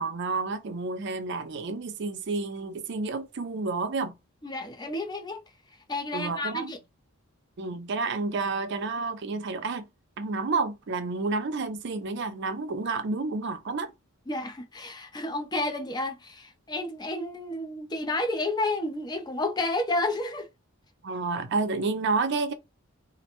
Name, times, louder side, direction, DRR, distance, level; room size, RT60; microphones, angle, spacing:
voice 1, 0.0-4.1 6.1-6.7 7.6-9.9 10.2-13.9 21.0-22.5, right 3 dB, 55° right, 0.5 m, -30 dB
voice 2, 4.4-5.4 5.9-6.8 14.3-20.5, left 2 dB, 20° left, 0.4 m, -31 dB
2.5 x 2.1 x 2.9 m
head